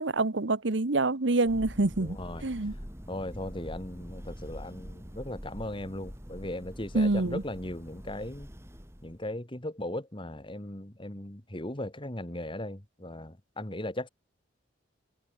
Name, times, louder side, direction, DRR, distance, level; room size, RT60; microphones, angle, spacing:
voice 1, 0.0-2.2 2.4-2.7 6.9-7.4, right 2 dB, 70° right, 1.2 m, -26 dB
Thunder, 1.4-9.3, equal, 15° right, 5.2 m, -45 dB
voice 2, 2.0-2.4 3.1-8.5 9.0-14.1, left 1 dB, 25° left, 2.6 m, -38 dB
head